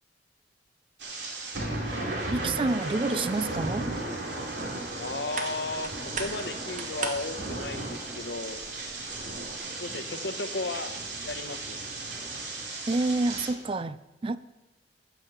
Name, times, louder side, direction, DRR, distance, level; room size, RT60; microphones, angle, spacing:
sound 1, 1.0-13.5, right 2 dB, 80° right, 2.9 m, -35 dB
voice 1, 2.3-4.0 12.9-14.4, right 3 dB, 30° right, 0.4 m, -28 dB
sound 2, 4.4-9.6, right 4 dB, 45° right, 1.3 m, -41 dB
voice 2, 5.0-8.6 9.8-10.9 11.2-11.8, left 3 dB, 70° left, 1.0 m, -35 dB
15.0 x 6.2 x 6.8 m
head